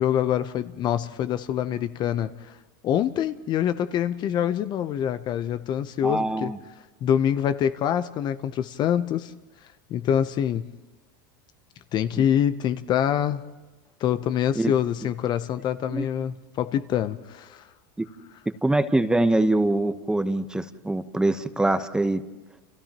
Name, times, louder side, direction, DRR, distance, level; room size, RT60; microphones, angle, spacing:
voice 1, 0.0-2.6 2.8-6.5 7.0-9.3 9.9-10.7 11.9-13.4 14.0-17.6, left 10 dB, 40° left, 12 dB, 0.8 m, -25 dB
voice 2, 6.0-6.6 14.5-14.7 15.9-16.1 18.0-18.1 18.6-22.2, right 2 dB, 5° right, 10 dB, 1.0 m, -23 dB
30.0 x 29.5 x 3.0 m, 1.1 s
hypercardioid pair, 110°, 11 cm